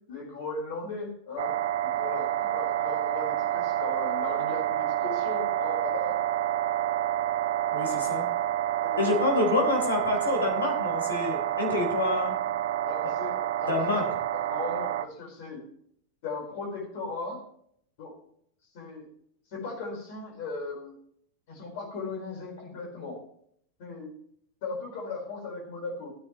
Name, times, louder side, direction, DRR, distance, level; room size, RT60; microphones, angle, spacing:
voice 1, 0.1-1.5 1.8-6.2 8.8-9.3 11.7-11.8 12.9-14.1 14.3-15.6 16.2-17.4 18.0-18.1 18.7-19.0 19.5-20.9 21.5-23.2 23.8-24.1 24.6-26.1, left 3 dB, 50° left, 1 dB, 4.6 m, -37 dB
sound 1, 1.4-15.0, right 12 dB, 55° right, 0.5 m, -28 dB
voice 2, 7.7-8.3 9.0-12.3 13.7-14.0, left 3 dB, 70° left, 2 dB, 3.7 m, -27 dB
15.0 x 9.3 x 3.1 m, 0.66 s
figure-of-eight pair, 90°, 0 cm